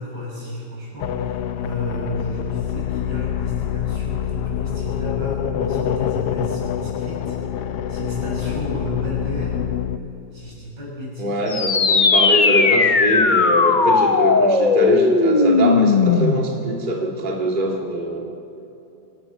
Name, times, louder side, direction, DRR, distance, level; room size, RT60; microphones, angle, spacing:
voice 1, 0.0-9.7 10.3-11.5, left 1 dB, 75° right, -4 dB, 7.6 m, -32 dB
sound 1, 1.0-10.0, left 9 dB, 75° left, 1.3 m, -26 dB
voice 2, 11.2-18.3, right 1 dB, 30° right, -1 dB, 2.2 m, -23 dB
sound 2, 11.5-16.5, left 4 dB, 35° left, 0.8 m, -17 dB
25.5 x 18.0 x 6.0 m, 2.9 s
omnidirectional pair, 1.9 m